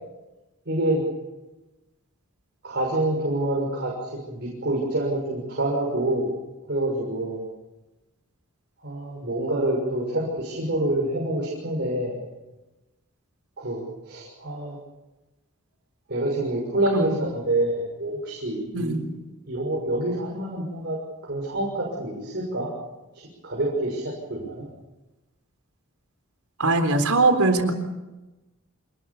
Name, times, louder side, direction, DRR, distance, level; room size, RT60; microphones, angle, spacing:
voice 1, 0.7-1.0 2.6-6.3 6.7-7.4 8.8-12.2 13.6-14.8 16.1-19.0 19.5-21.0 21.2-22.7 23.1-24.7, right 1 dB, 55° right, -3 dB, 6.5 m, -27 dB
voice 2, 18.7-19.1 26.6-27.7, right 3 dB, 85° right, 6 dB, 3.9 m, -21 dB
27.5 x 20.0 x 7.2 m, 1.1 s
head